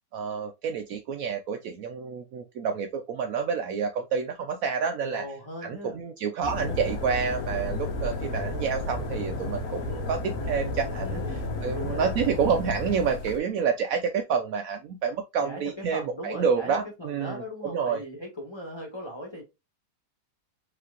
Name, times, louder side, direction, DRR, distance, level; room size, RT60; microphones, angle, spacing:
voice 1, 0.1-5.2 5.6-17.4 17.7-18.0, right 6 dB, 85° right, 0.7 m, -28 dB
voice 2, 5.1-6.0 11.0-11.5 11.7-12.2 15.4-19.4, equal, 15° left, 1.3 m, -39 dB
starting fire in blacksmith, 6.4-13.4, left 2 dB, 60° left, 1.3 m, -32 dB
4.9 x 3.2 x 2.5 m
omnidirectional pair, 2.0 m